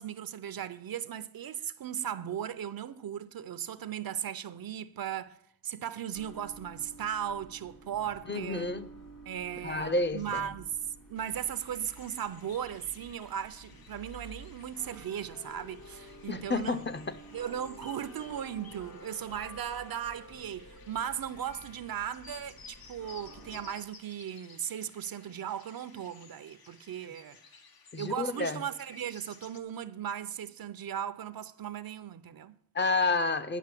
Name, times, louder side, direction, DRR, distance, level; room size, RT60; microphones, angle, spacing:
voice 1, 0.0-5.4 5.6-8.7 9.3-10.8 11.1-16.8 17.3-27.4 28.0-32.6, right 9 dB, 80° right, 0.6 m, -37 dB
sound 1, 6.1-23.7, equal, 65° left, 3.0 m, -51 dB
voice 2, 8.3-8.9 9.6-10.5 16.3-17.2 27.9-28.6 32.7-33.6, left 3 dB, 30° left, 0.5 m, -30 dB
sound 2, 11.1-29.6, left 5 dB, 80° left, 1.0 m, -56 dB
10.0 x 5.5 x 7.5 m
wide cardioid pair, 85°, 35 cm